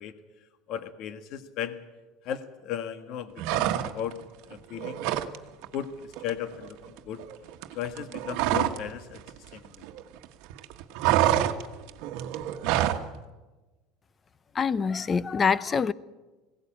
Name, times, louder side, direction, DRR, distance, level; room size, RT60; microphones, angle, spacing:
voice 1, 0.0-1.8 2.2-4.2 4.5-5.0 5.7-7.2 7.7-9.2 9.5-9.9, left 9 dB, 50° left, 1.5 m, -36 dB
sound 1, 3.4-4.2 4.5-5.4 5.6-5.8 6.1-8.9 9.2-10.3 10.5-13.1, right 13 dB, 60° right, 1.3 m, -27 dB
voice 2, 14.5-15.9, left 6 dB, 20° left, 0.6 m, -25 dB
20.0 x 17.0 x 8.9 m
cardioid pair, 145°, 0 cm